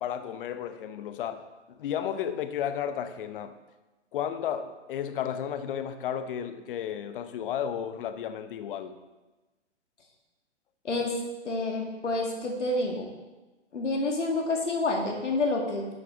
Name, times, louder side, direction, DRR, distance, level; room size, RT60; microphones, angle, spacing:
voice 1, 0.0-3.6 4.1-9.0, left 9 dB, 50° left, 10 dB, 0.8 m, -33 dB
voice 2, 11.4-13.1 13.7-15.9, left 2 dB, 85° left, 1 dB, 2.3 m, -28 dB
10.5 x 6.4 x 3.9 m, 1.1 s
hypercardioid pair, 125°, 36 cm